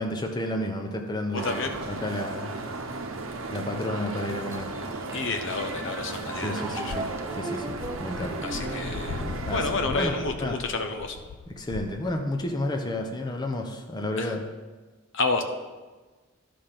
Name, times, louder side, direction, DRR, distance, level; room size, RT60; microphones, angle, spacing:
voice 1, 0.0-2.6 3.5-4.7 6.4-8.4 9.5-10.6 11.5-14.4, left 1 dB, 20° left, 3 dB, 0.8 m, -31 dB
voice 2, 1.3-1.7 5.1-6.9 8.4-9.2 9.5-11.2 14.2-14.3 15.1-15.4, left 3 dB, 65° left, 6 dB, 0.8 m, -30 dB
sound 1, 1.3-9.7, right 3 dB, 75° right, 0.9 m, -35 dB
sound 2, 4.5-11.2, right 1 dB, 10° right, 0.5 m, -39 dB
sound 3, 6.9-12.4, left 5 dB, 85° left, 0.4 m, -39 dB
12.0 x 5.1 x 5.9 m, 1.3 s
head